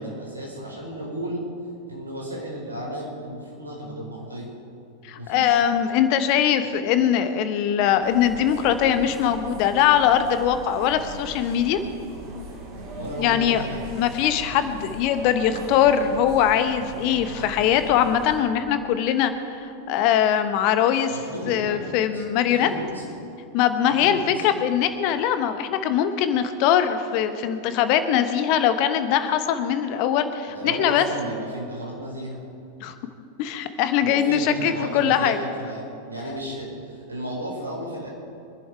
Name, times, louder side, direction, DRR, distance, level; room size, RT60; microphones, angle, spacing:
voice 1, 0.0-1.4 1.9-4.5 5.1-5.6 12.9-13.8 21.1-23.0 23.8-24.4 30.4-32.4 34.0-38.1, right 1 dB, 80° right, -1 dB, 4.5 m, -34 dB
voice 2, 5.0-11.8 13.2-13.6 13.9-19.3 19.6-21.1 21.5-22.7 23.5-31.0 32.8-32.9 33.4-35.4, left 9 dB, 45° left, 10 dB, 1.2 m, -21 dB
sound 1, 8.0-18.4, right 2 dB, 45° right, 4.3 m, -39 dB
24.5 x 11.0 x 4.8 m, 2.6 s
figure-of-eight pair, 90°, 0 cm